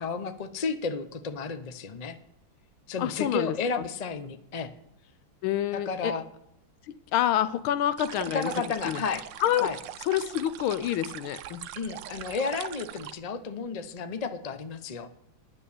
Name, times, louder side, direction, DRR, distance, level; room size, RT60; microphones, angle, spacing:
voice 1, 0.0-2.2 2.9-4.7 5.7-6.2 8.3-9.2 9.6-9.8 11.8-15.1, left 5 dB, 60° left, 9 dB, 0.4 m, -32 dB
voice 2, 3.0-3.8 5.4-6.1 6.9-8.5 8.8-9.0 9.4-9.7 10.0-11.6, left 11 dB, 90° left, 14 dB, 1.5 m, -27 dB
sound 1, 8.0-13.1, right 12 dB, 70° right, 1.2 m, -41 dB
10.0 x 7.5 x 8.5 m, 0.82 s
omnidirectional pair, 2.2 m